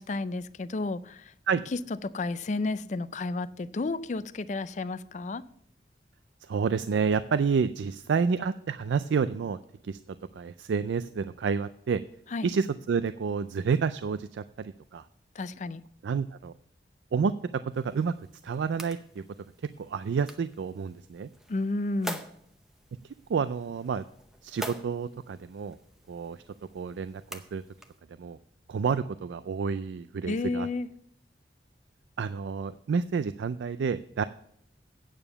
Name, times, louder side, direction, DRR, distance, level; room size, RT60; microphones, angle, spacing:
voice 1, 0.0-1.3 2.1-5.4 12.3-12.5 15.4-15.8 21.5-22.2 30.3-30.9, left 3 dB, 40° left, 16 dB, 0.4 m, -32 dB
voice 2, 6.4-12.0 12.4-15.1 16.0-16.5 17.1-18.1 18.4-19.2 19.8-21.3 23.0-24.0 24.4-25.8 26.1-26.4 26.7-27.6 28.2-28.4 28.7-30.7 32.2-34.2, right 5 dB, 80° right, 12 dB, 0.4 m, -29 dB
sound 1, 17.7-28.0, equal, 5° right, 0.7 m, -46 dB
8.9 x 7.0 x 6.9 m, 0.68 s
head